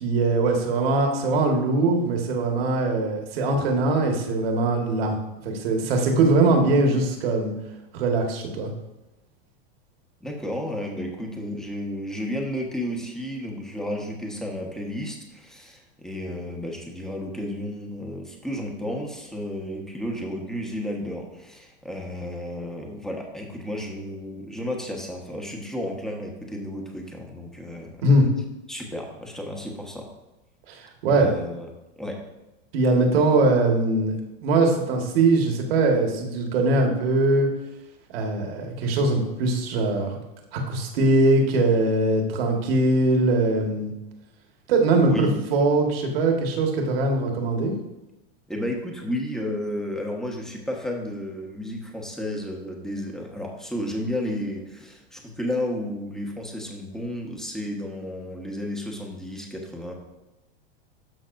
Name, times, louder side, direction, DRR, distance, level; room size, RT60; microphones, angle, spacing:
voice 1, 0.0-5.2 5.4-7.5 7.9-8.7 28.0-28.3 30.7-31.3 32.7-34.1 34.4-37.5 38.1-40.2 40.5-43.9 44.7-47.7, right 2 dB, 70° right, 2 dB, 1.8 m, -21 dB
voice 2, 10.2-28.0 28.7-30.1 31.1-31.7 32.0-32.2 45.0-45.4 48.5-59.9, left 1 dB, ahead, 0 dB, 1.3 m, -32 dB
12.5 x 5.9 x 2.7 m, 0.97 s
hypercardioid pair, 125°, 31 cm